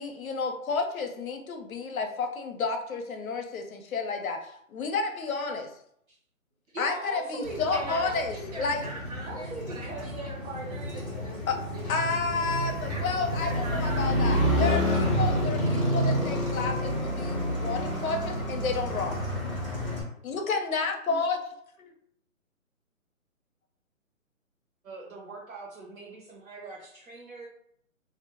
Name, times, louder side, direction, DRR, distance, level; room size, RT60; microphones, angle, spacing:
voice 1, 0.0-5.7 6.8-8.8 11.5-11.6 11.9-19.3 20.2-21.4 21.8-21.9, left 4 dB, 85° left, 5 dB, 0.7 m, -31 dB
voice 2, 6.7-8.2 9.2-11.1 24.8-27.5, right 3 dB, 80° right, -4 dB, 0.9 m, -40 dB
Motorcycle, 7.4-20.0, equal, 25° left, 0.6 m, -29 dB
voice 3, 7.7-12.1 12.9-14.2, right 1 dB, 30° right, -5 dB, 0.7 m, -42 dB
2.5 x 2.1 x 2.8 m, 0.69 s
hypercardioid pair, 165°, 41 cm